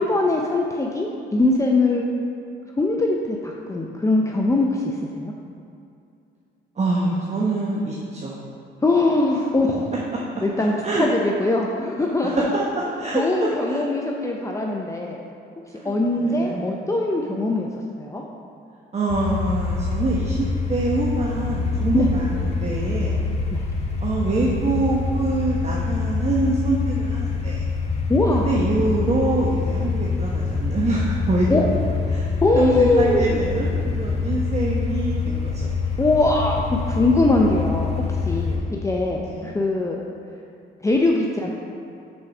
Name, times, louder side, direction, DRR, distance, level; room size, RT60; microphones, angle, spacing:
voice 1, 0.0-2.1 2.8-5.3 8.8-9.9 10.4-10.7 11.0-12.3 13.1-15.2 15.8-17.7 18.0-18.2 21.9-22.1 23.5-23.6 28.1-28.5 31.5-31.6 32.4-33.4 36.0-37.9 38.3-40.0 40.8-41.5, left 2 dB, 15° left, -1 dB, 0.5 m, -21 dB
voice 2, 6.8-8.4 10.8-11.1 12.2-13.8 15.8-16.7 17.3-17.4 18.9-23.2 24.0-27.7 28.4-31.8 32.1-36.0 38.5-38.8 39.2-39.5, right 2 dB, 35° right, -4 dB, 0.9 m, -25 dB
sound 1, 19.1-38.6, left 4 dB, 30° left, 1.1 m, -25 dB
6.2 x 4.7 x 5.9 m, 2.5 s
cardioid pair, 90°, 20 cm